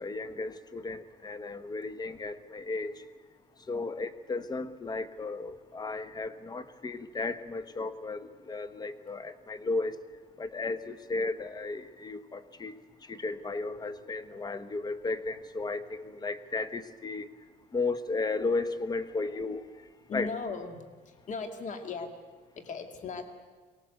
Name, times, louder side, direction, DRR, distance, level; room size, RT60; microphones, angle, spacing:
voice 1, 0.0-3.0 3.7-10.0 10.4-12.7 13.0-17.3 17.7-19.6 20.1-20.3, left 3 dB, 25° left, 12 dB, 1.3 m, -34 dB
voice 2, 20.1-20.8 21.3-22.1 22.6-23.3, left 4 dB, 45° left, 6 dB, 2.6 m, -37 dB
23.5 x 18.0 x 8.1 m, 1.4 s
cardioid pair, 110°, 17 cm